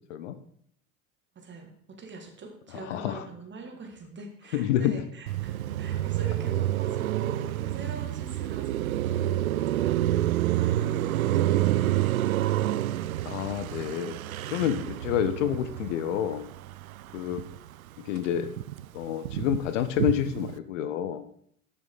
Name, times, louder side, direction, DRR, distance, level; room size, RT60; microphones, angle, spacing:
voice 1, 1.3-12.8, right 3 dB, 25° right, 3 dB, 2.1 m, -44 dB
voice 2, 2.9-3.2 4.5-5.0 13.2-14.2 14.5-16.4 17.1-17.4 18.0-18.5 18.9-21.2, left 10 dB, 55° left, 11 dB, 0.8 m, -28 dB
Car passing by, 5.3-17.7 18.1-20.6, right 13 dB, 70° right, 0.5 m, -28 dB
13.5 x 6.0 x 4.0 m, 0.65 s
figure-of-eight pair, 75°, 44 cm